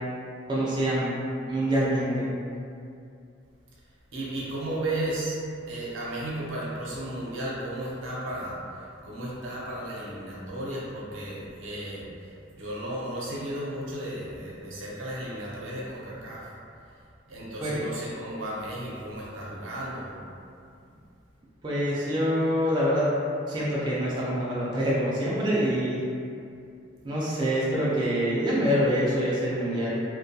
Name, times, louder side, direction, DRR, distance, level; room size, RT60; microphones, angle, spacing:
voice 1, 0.5-1.1 1.5-2.3 17.6-17.9 21.6-23.1 23.5-26.0 27.0-30.0, equal, 25° right, -8 dB, 0.3 m, -25 dB
voice 2, 4.1-5.4 5.7-16.5 17.3-20.2, right 1 dB, 80° right, -6 dB, 0.6 m, -34 dB
2.2 x 2.1 x 2.6 m, 2.5 s
head